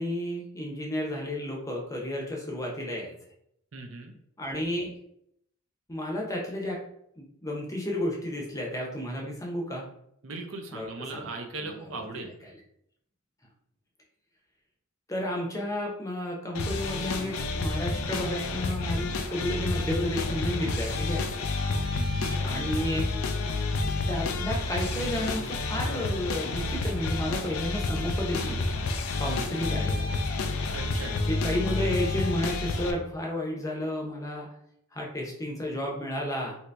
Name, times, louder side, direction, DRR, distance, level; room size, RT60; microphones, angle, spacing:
voice 1, 0.0-3.1 4.4-4.9 5.9-6.8 7.2-9.9 10.7-11.3 11.6-12.6 15.1-21.5 22.4-23.1 24.1-28.6 29.2-30.3 31.3-34.5 34.9-36.6, left 1 dB, 15° left, -1 dB, 0.6 m, -32 dB
voice 2, 3.7-4.1 10.2-12.3 21.9-22.4 30.7-31.1, right 3 dB, 65° right, 3 dB, 0.6 m, -39 dB
sound 1, 16.5-32.9, left 3 dB, 85° left, 0.4 m, -29 dB
2.9 x 2.7 x 3.3 m, 0.72 s
head